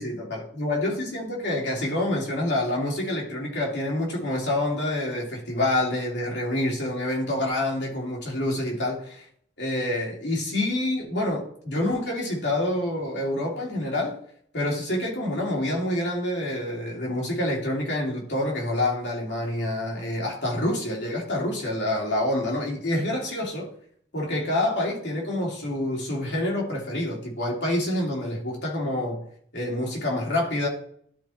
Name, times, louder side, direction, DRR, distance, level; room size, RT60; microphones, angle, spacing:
voice 1, 0.0-9.2 9.6-14.2 14.5-23.7 24.1-29.2 29.5-30.7, left 1 dB, 85° left, -2 dB, 2.8 m, -27 dB
12.0 x 4.3 x 4.3 m, 0.63 s
head